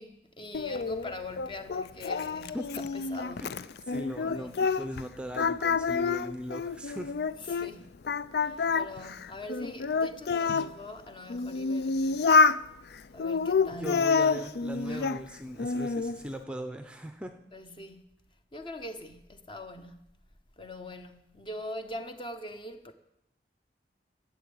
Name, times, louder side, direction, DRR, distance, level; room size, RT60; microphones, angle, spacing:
voice 1, 0.0-3.6 4.2-4.6 7.3-7.9 8.4-12.4 13.1-14.1 14.8-15.1 17.5-18.0 18.5-20.2 20.6-22.9, left 1 dB, 30° left, 0.9 m, -43 dB
Singing, 0.5-5.1 5.3-7.7 8.1-10.7 11.3-12.6 13.2-15.2 15.6-16.2, left 4 dB, 65° left, 0.4 m, -28 dB
voice 2, 3.9-7.1 8.6-8.7 13.8-17.3, equal, 5° right, 0.6 m, -39 dB
13.0 x 7.6 x 9.0 m
head